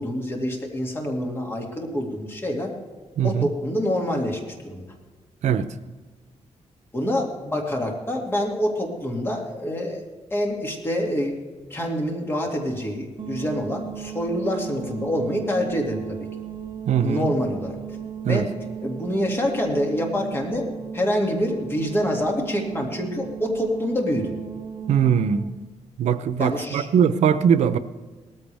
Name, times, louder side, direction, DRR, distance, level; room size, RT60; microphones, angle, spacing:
voice 1, 0.0-2.7 3.2-4.8 6.9-10.0 10.3-11.3 11.7-16.0 17.0-17.7 18.3-18.5 18.8-20.6 20.9-24.3 26.4-26.9, equal, 20° left, 2.3 m, -26 dB
voice 2, 3.2-3.5 5.4-5.7 16.9-17.3 18.2-18.5 24.9-25.5 26.0-27.8, right 8 dB, 90° right, 0.7 m, -21 dB
sound 1, 13.2-25.5, right 8 dB, 45° right, 0.9 m, -36 dB
18.5 x 14.0 x 3.4 m
wide cardioid pair, 150°, 12 cm